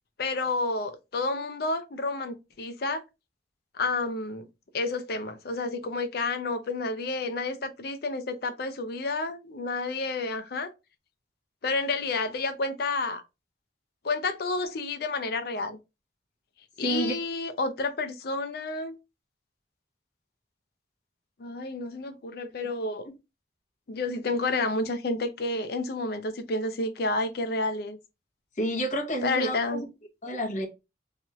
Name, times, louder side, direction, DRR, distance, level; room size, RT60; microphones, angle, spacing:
voice 1, 0.2-3.0 3.7-4.5 4.7-10.7 11.6-13.2 14.0-15.8 16.8-19.0 21.4-23.1 23.9-28.0 29.2-29.8, left 3 dB, 60° left, 0.5 m, -30 dB
voice 2, 16.8-17.1 28.6-29.8 30.2-30.7, right 1 dB, 40° left, 0.9 m, -29 dB
3.0 x 2.9 x 2.3 m
head